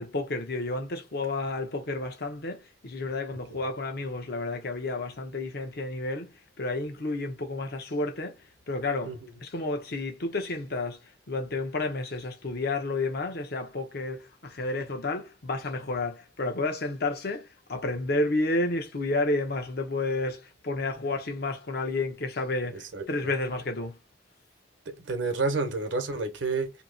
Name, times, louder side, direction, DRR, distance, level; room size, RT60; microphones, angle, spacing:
voice 1, 0.0-11.0 11.3-24.0, left 2 dB, 55° left, 0.7 m, -31 dB
voice 2, 24.9-26.7, right 3 dB, 80° right, 0.9 m, -29 dB
2.8 x 2.8 x 3.9 m
head